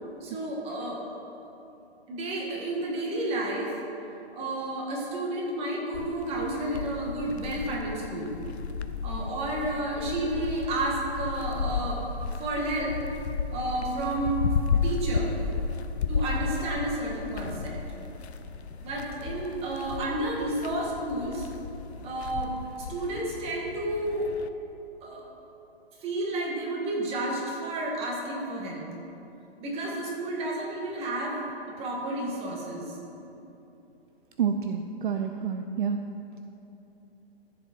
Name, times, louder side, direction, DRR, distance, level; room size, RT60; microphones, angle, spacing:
voice 1, 0.2-1.0 2.1-3.8 4.3-8.3 9.0-12.0 12.3-13.0 13.5-14.4 14.8-15.3 16.1-17.8 18.7-21.5 22.0-24.3 25.0-25.3 26.0-28.9 29.6-31.4 31.8-33.0, right 1 dB, 20° right, -2 dB, 1.9 m, -31 dB
sound 1, 5.9-24.5, left 5 dB, 85° left, 0.8 m, -33 dB
voice 2, 34.4-36.0, right 7 dB, 55° right, 6 dB, 0.6 m, -28 dB
14.0 x 7.2 x 4.5 m, 2.9 s
hypercardioid pair, 145°, 32 cm